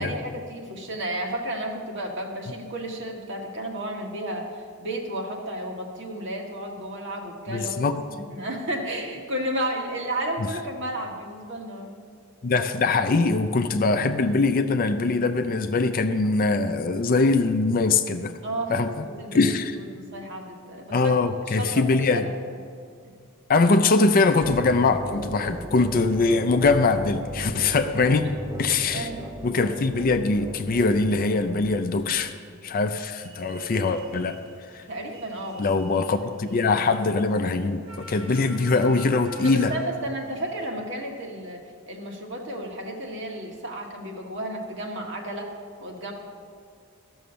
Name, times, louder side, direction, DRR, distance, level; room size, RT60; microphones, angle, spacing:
voice 1, 0.0-12.0 18.4-19.6 19.9-21.1 21.5-22.2 28.0-28.3 28.6-29.3 34.9-35.7 36.2-36.6 39.4-41.6 41.9-45.5 45.8-46.1, right 1 dB, 55° right, 1 dB, 1.6 m, -33 dB
voice 2, 7.5-8.0 12.4-18.3 18.7-19.0 19.3-19.7 20.9-22.3 23.5-28.3 28.6-29.1 29.4-32.3 32.6-34.4 34.7-34.8 35.6-39.7, left 3 dB, 40° left, 8 dB, 0.5 m, -22 dB
sound 1, 24.4-32.5, right 1 dB, 15° right, 0.5 m, -37 dB
sound 2, 33.1-40.7, right 1 dB, 75° right, 1.8 m, -46 dB
13.0 x 6.3 x 6.8 m, 2.2 s
head